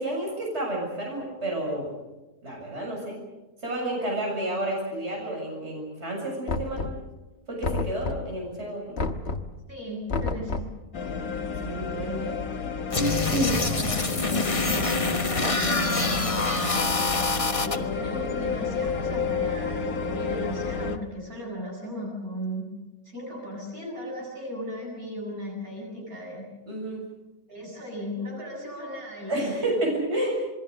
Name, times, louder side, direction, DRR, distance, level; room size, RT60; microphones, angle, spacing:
voice 1, 0.0-1.9 2.4-3.2 3.6-6.9 7.5-9.0 11.6-12.2 12.9-13.6 26.7-27.0 29.3-30.4, right 1 dB, 45° right, -2 dB, 7.5 m, -30 dB
Knock, 6.5-7.2 7.6-8.4 9.0-9.6 10.1-10.8, left 3 dB, 50° left, 1.5 m, -30 dB
voice 2, 9.7-10.7 12.0-12.4 13.3-14.0 14.3-15.1 15.5-16.9 17.6-26.5 27.5-29.8, equal, 75° right, -1 dB, 8.0 m, -36 dB
sound 1, 10.9-21.0, left 4 dB, 75° left, 1.6 m, -31 dB
sound 2, 12.9-17.8, left 3 dB, 25° left, 1.2 m, -26 dB
27.0 x 21.5 x 6.7 m, 1.1 s
omnidirectional pair, 1.5 m